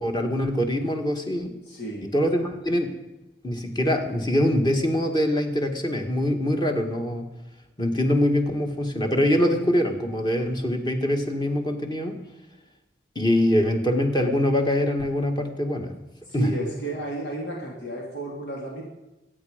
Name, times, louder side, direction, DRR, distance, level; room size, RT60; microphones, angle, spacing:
voice 1, 0.0-1.6 2.0-2.9 3.4-7.3 7.8-12.2 13.2-15.9 16.3-16.5, left 1 dB, 25° left, 3 dB, 1.9 m, -24 dB
voice 2, 1.6-2.1 16.3-18.8, right 1 dB, 80° left, -2 dB, 3.0 m, -32 dB
24.0 x 9.1 x 5.2 m, 1.0 s
head